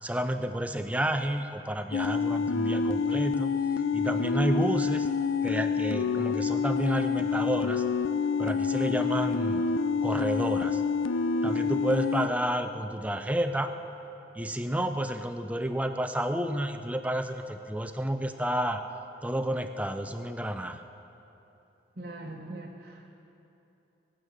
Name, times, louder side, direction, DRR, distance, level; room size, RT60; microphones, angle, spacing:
voice 1, 0.0-3.5 3.9-5.1 5.4-7.8 8.4-9.6 10.0-10.8 11.4-13.7 14.3-18.8 19.2-20.8, right 1 dB, 5° right, 7 dB, 0.5 m, -30 dB
sound 1, 1.9-12.3, left 5 dB, 80° left, 0.5 m, -27 dB
voice 2, 22.0-23.1, right 2 dB, 45° right, -3 dB, 1.1 m, -41 dB
22.0 x 9.0 x 6.5 m, 2.9 s
head